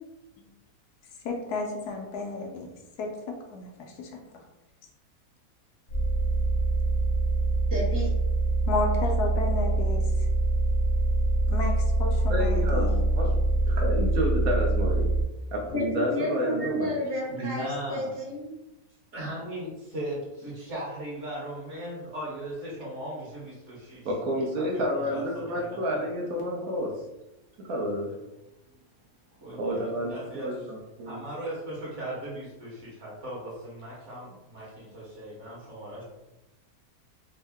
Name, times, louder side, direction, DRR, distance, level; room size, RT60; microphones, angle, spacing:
voice 1, 1.2-2.7 3.0-3.7 4.0-4.2 8.7-10.0 11.5-11.7 12.0-13.0, left 3 dB, 80° left, 2 dB, 1.1 m, -32 dB
sound 1, 5.9-15.2, right 2 dB, 60° left, 0.6 m, -24 dB
voice 2, 7.7-8.1 15.7-18.5, left 1 dB, 10° left, -6 dB, 0.7 m, -31 dB
voice 3, 12.3-12.9 13.2-13.3 13.7-15.1 15.5-17.0 24.0-27.0 27.6-28.1 29.5-31.2, equal, 70° right, -2 dB, 1.1 m, -30 dB
voice 4, 17.3-18.1 19.1-24.1 24.5-26.1 29.4-30.7 31.0-36.0, right 1 dB, 50° right, -5 dB, 1.4 m, -38 dB
3.6 x 2.0 x 3.4 m, 0.98 s
omnidirectional pair, 1.7 m